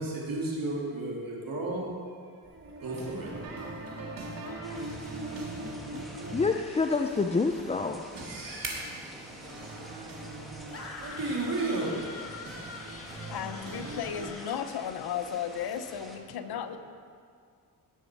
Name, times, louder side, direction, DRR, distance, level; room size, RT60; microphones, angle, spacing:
voice 1, 0.0-1.9 2.2-6.4 8.1-14.3 16.3-16.8, right 2 dB, 55° right, -4 dB, 3.3 m, -36 dB
sound 1, 2.4-14.3, right 2 dB, 30° right, 2.6 m, -49 dB
sound 2, 4.6-16.2, equal, ahead, 1.6 m, -49 dB
voice 2, 6.3-8.1, left 4 dB, 15° left, 5 dB, 0.4 m, -27 dB
sound 3, 10.7-14.6, left 3 dB, 35° left, 1.4 m, -44 dB
voice 3, 13.3-16.8, left 8 dB, 65° left, 9 dB, 0.9 m, -35 dB
17.5 x 6.4 x 4.6 m, 2.2 s
cardioid pair, 85°, 41 cm